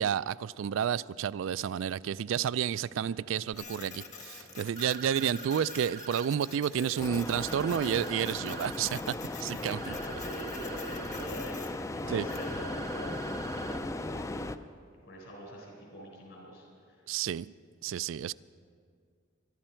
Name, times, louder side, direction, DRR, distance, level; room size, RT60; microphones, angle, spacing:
voice 1, 0.0-9.0 9.4-9.9 12.1-12.3 17.1-17.5 17.8-18.3, right 8 dB, 70° right, 0.3 m, -30 dB
voice 2, 2.9-3.2 6.7-7.0 9.5-14.6 15.0-17.1, equal, 65° left, 4.4 m, -45 dB
Printer, 3.5-12.5, left 5 dB, 35° left, 1.3 m, -48 dB
sound 1, 4.8-6.3 7.3-8.8 9.8-11.3 12.3-13.8, right 7 dB, 50° right, 0.7 m, -45 dB
sound 2, 7.0-14.6, left 2 dB, 15° left, 0.4 m, -37 dB
22.0 x 12.5 x 4.5 m
head